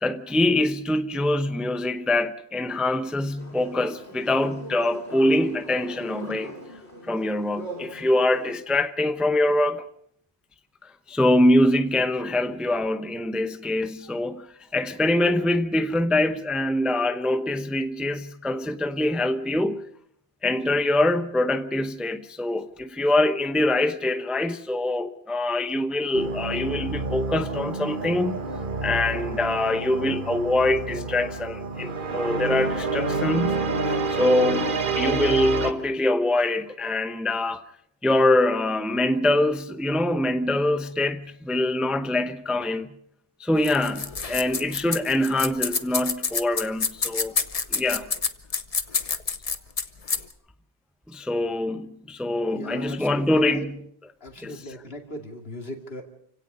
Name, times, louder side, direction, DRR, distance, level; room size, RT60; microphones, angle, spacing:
voice 1, 0.0-6.5 7.1-9.8 11.1-14.5 14.7-19.8 20.4-28.4 28.8-37.6 38.0-42.9 43.4-47.3 47.7-48.1 51.1-53.7 54.4-54.5, left 1 dB, ahead, 0.7 m, -24 dB
sound 1, 3.4-8.5, equal, 85° left, 4.7 m, -41 dB
sound 2, 26.1-35.7, right 3 dB, 50° right, 1.4 m, -28 dB
sound 3, 43.6-50.3, left 5 dB, 35° left, 0.9 m, -27 dB
voice 2, 52.5-53.7 54.2-56.0, left 1 dB, 65° left, 2.7 m, -38 dB
28.5 x 17.0 x 5.4 m
omnidirectional pair, 1.1 m